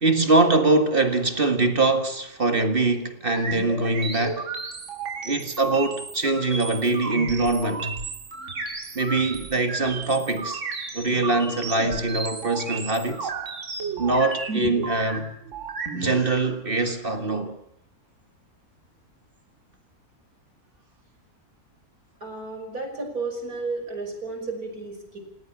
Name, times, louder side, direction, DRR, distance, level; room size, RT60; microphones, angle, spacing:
voice 1, 0.0-4.5 5.2-7.9 9.0-10.6 10.9-13.3 14.0-15.3 15.9-17.6, right 2 dB, 35° right, 1.9 m, -23 dB
sound 1, 3.3-16.2, right 4 dB, 55° right, 2.3 m, -33 dB
voice 2, 22.2-25.2, right 3 dB, 70° right, 5.9 m, -33 dB
28.5 x 18.5 x 6.1 m
omnidirectional pair, 1.6 m